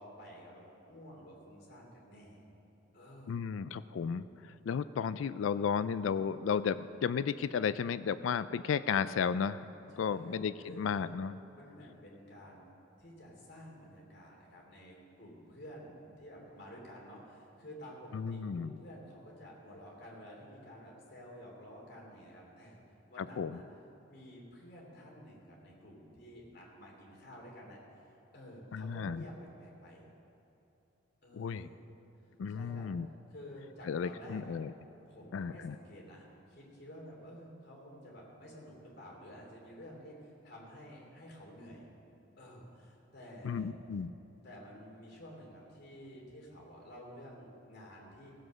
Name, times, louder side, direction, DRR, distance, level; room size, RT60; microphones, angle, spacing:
voice 1, 0.0-2.4 2.9-3.4 9.9-11.1 11.5-22.8 23.1-23.6 24.1-30.1 31.2-31.8 32.5-32.9 33.3-34.6 35.1-41.9 42.4-43.7 44.4-48.3, equal, 55° left, -3 dB, 3.1 m, -51 dB
voice 2, 3.3-9.6 10.0-11.4 18.1-18.7 23.2-23.5 28.7-29.2 31.3-31.7 32.4-33.1 33.9-34.7 35.3-35.8 43.4-44.1, left 6 dB, 90° left, 14 dB, 0.4 m, -34 dB
16.0 x 7.8 x 6.3 m, 2.9 s
head